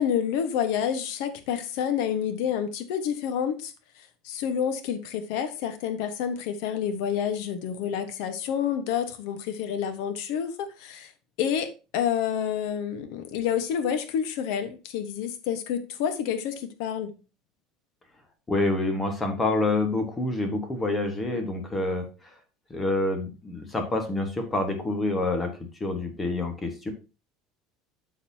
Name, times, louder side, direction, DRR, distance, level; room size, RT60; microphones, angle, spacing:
voice 1, 0.0-3.7 4.2-10.5 10.8-11.1 11.4-17.1, left 8 dB, 65° left, 9 dB, 1.1 m, -28 dB
voice 2, 18.5-22.3 22.7-26.9, left 2 dB, 10° left, 5 dB, 1.3 m, -27 dB
12.0 x 4.1 x 2.7 m, 0.31 s
cardioid pair, 170°, 0 cm